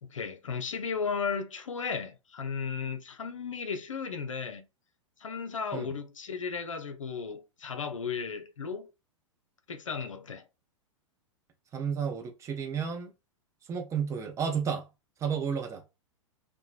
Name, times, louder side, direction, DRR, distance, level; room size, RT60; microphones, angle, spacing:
voice 1, 0.0-4.7 5.2-8.9 9.7-10.4, left 5 dB, 75° left, 0.5 m, -35 dB
voice 2, 11.7-13.1 13.7-14.9 15.2-15.8, right 7 dB, 20° right, 0.5 m, -32 dB
3.0 x 2.1 x 2.4 m
figure-of-eight pair, 100°, 17 cm